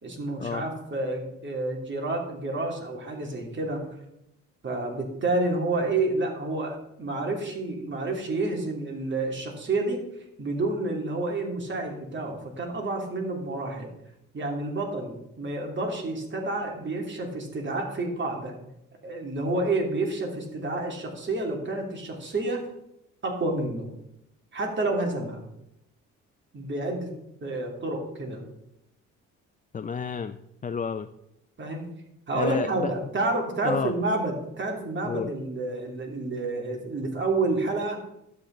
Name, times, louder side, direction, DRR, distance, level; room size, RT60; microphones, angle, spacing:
voice 1, 0.0-3.8 4.6-10.0 10.4-13.9 14.3-18.5 19.0-22.6 23.2-23.9 24.5-25.4 26.5-27.1 27.4-28.4 31.6-31.9 32.3-38.0, right 2 dB, 40° right, 1 dB, 2.8 m, -29 dB
voice 2, 29.7-30.4 30.6-31.1 32.3-32.9 33.6-33.9 35.0-35.3, left 6 dB, 25° left, 9 dB, 0.5 m, -30 dB
11.5 x 8.1 x 3.9 m, 0.83 s
cardioid pair, 90°, 30 cm